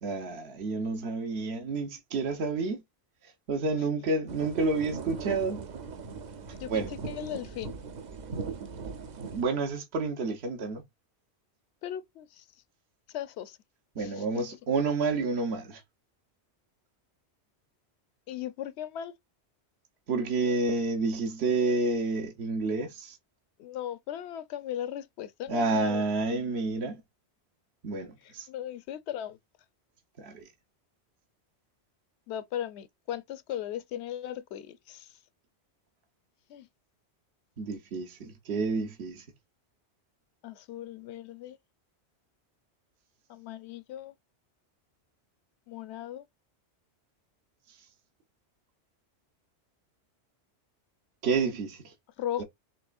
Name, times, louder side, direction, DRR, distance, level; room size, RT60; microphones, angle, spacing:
voice 1, 0.0-2.8 3.5-5.6 6.7-6.9 9.3-10.8 14.0-15.8 20.1-23.2 25.5-27.0 27.8-28.5 30.2-30.5 37.6-39.2 51.2-51.9 52.4-52.5, right 3 dB, 70° right, 1.2 m, -29 dB
sound 1, 4.3-9.4, right 5 dB, 50° right, 0.7 m, -39 dB
voice 2, 6.6-7.7 11.8-12.5 13.1-13.6 14.0-14.4 18.3-19.1 23.6-26.0 28.2-29.4 32.3-35.1 36.5-36.7 40.4-41.6 43.3-44.1 45.7-46.2 52.2-52.4, left 11 dB, 75° left, 0.9 m, -37 dB
7.0 x 3.2 x 2.4 m
omnidirectional pair, 1.2 m